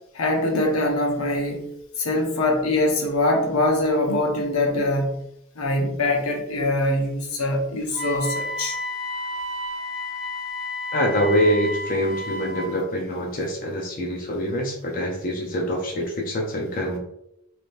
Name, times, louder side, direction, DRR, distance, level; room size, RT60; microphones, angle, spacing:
voice 1, 0.1-1.7 2.0-5.2 5.6-8.7, left 1 dB, 90° left, 1 dB, 0.8 m, -23 dB
Wind instrument woodwind instrument, 7.9-12.8, left 2 dB, 5° right, 0.6 m, -31 dB
voice 2, 10.9-17.0, equal, 40° left, 0 dB, 0.6 m, -25 dB
3.4 x 2.9 x 2.6 m, 0.80 s
head